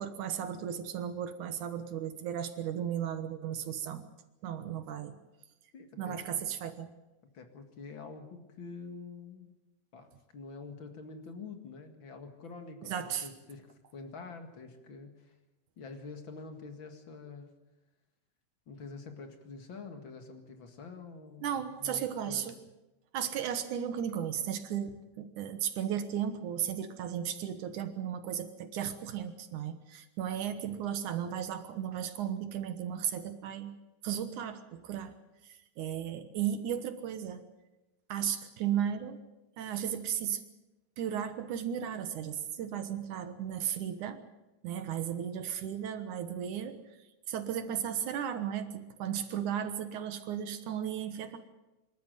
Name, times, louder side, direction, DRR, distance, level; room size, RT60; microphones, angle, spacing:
voice 1, 0.0-4.1 4.4-5.2 6.0-6.9 12.8-13.3 21.4-22.6 23.1-33.8 34.0-35.1 35.4-37.4 38.1-39.2 39.6-40.4 41.0-44.2 44.6-46.8 47.3-51.4, right 9 dB, 65° right, 10 dB, 2.4 m, -35 dB
voice 2, 5.7-6.4 7.3-9.5 9.9-15.3 15.8-17.5 18.7-21.5 21.8-22.5, left 4 dB, 40° left, 6 dB, 2.2 m, -46 dB
25.0 x 13.5 x 9.2 m, 1.0 s
omnidirectional pair, 4.1 m